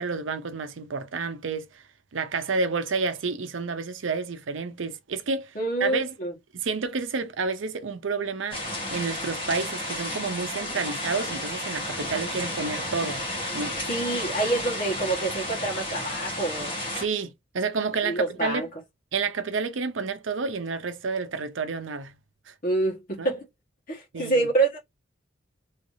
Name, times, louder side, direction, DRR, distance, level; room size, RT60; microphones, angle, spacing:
voice 1, 0.0-1.8 2.1-5.5 5.8-6.1 6.5-8.6 8.9-13.2 13.5-13.8 17.0-18.7 19.1-22.1 22.5-22.6 23.2-23.3 24.1-24.5, right 4 dB, 75° right, 0.6 m, -30 dB
voice 2, 5.5-6.3 13.9-16.8 18.0-18.7 22.6-23.4 23.9-24.8, right 2 dB, 45° left, 1.5 m, -27 dB
sound 1, 8.5-17.0, left 1 dB, 30° left, 1.2 m, -32 dB
3.3 x 3.1 x 2.6 m
head